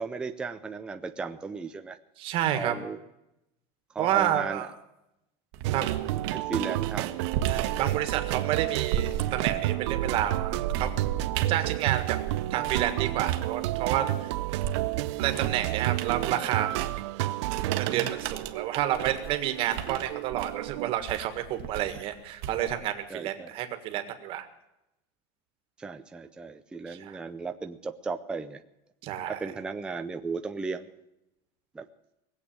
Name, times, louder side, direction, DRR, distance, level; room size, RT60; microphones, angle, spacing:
voice 1, 0.0-2.0 2.5-3.0 3.9-4.7 6.0-7.2 23.1-23.5 25.8-28.6 29.3-30.9 31.7-31.9, right 4 dB, 5° right, 6 dB, 0.5 m, -35 dB
voice 2, 2.2-2.7 4.0-4.7 5.7-5.8 7.4-10.9 11.5-12.2 12.5-14.3 15.2-16.9 17.8-24.5 26.9-27.1 29.0-29.4, right 12 dB, 40° right, 8 dB, 1.7 m, -30 dB
sound 1, 5.5-12.9 13.3-22.9, right 10 dB, 60° right, 1.3 m, -35 dB
sound 2, 5.6-20.9, right 17 dB, 85° right, 0.6 m, -31 dB
20.0 x 8.2 x 8.8 m, 0.88 s
cardioid pair, 180°, 15 cm